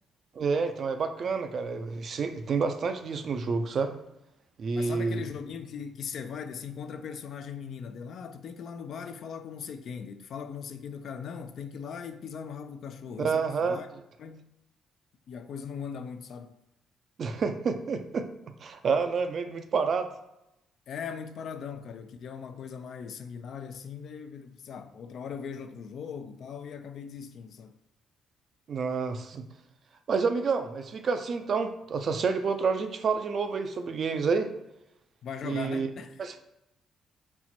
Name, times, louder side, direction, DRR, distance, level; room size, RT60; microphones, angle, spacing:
voice 1, 0.4-4.0 4.6-5.2 13.2-13.8 17.2-18.3 18.6-20.1 28.7-29.5 30.1-34.5 35.4-35.9 36.2-36.4, right 5 dB, 55° right, 0.4 m, -29 dB
voice 2, 4.7-13.9 14.2-14.5 15.3-16.6 20.9-27.8 35.2-36.2, left 6 dB, 65° left, 0.3 m, -39 dB
4.3 x 2.0 x 4.2 m
cardioid pair, 90°, 0 cm